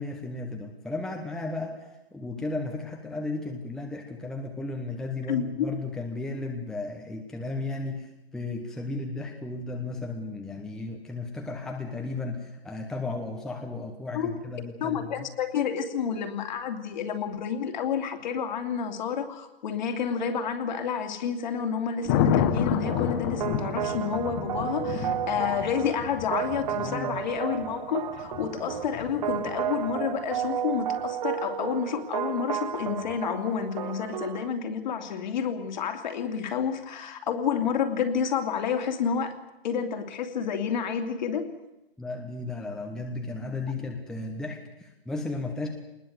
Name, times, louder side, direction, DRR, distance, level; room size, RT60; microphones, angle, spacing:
voice 1, 0.0-15.1 26.8-27.2 42.0-45.7, left 2 dB, ahead, 1 dB, 1.2 m, -34 dB
voice 2, 5.3-5.7 14.1-14.3 14.8-39.3 39.6-41.5, left 7 dB, 50° left, 6 dB, 2.8 m, -30 dB
Thunder, 22.1-30.1 32.8-33.2, left 8 dB, 25° left, 1.4 m, -30 dB
sound 1, 22.9-34.5, right 10 dB, 40° right, 1.2 m, -33 dB
21.5 x 20.0 x 8.1 m, 0.93 s
hypercardioid pair, 155°, 30 cm